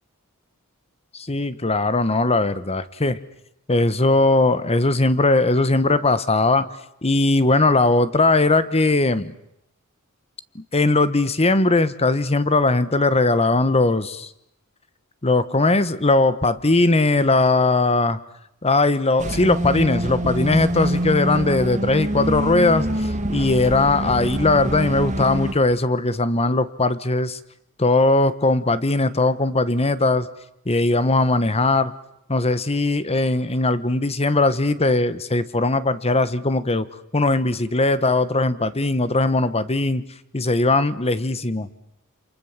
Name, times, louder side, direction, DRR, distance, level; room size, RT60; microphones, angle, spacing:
voice 1, 1.1-3.2 3.7-6.7 7.0-9.3 10.5-14.3 15.2-18.2 18.6-27.4 27.8-30.3 30.6-31.9 32.3-36.9 37.1-40.0 40.3-41.7, left 2 dB, 30° left, 14 dB, 1.3 m, -19 dB
sound 1, 19.2-25.5, right 1 dB, 35° right, 2.1 m, -25 dB
28.5 x 27.5 x 7.5 m, 0.78 s
head